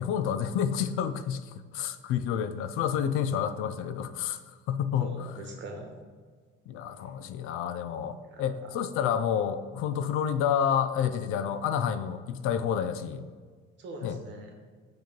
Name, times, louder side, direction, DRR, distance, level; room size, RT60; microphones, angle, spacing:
voice 1, 0.0-1.4 1.7-4.4 4.7-5.1 6.7-13.2 14.0-14.2, left 8 dB, 90° left, 12 dB, 0.4 m, -29 dB
voice 2, 5.0-6.0 8.2-8.7 13.8-14.5, right 2 dB, 60° right, 2 dB, 1.1 m, -42 dB
7.0 x 3.1 x 4.4 m, 1.5 s
cardioid pair, 145°, 21 cm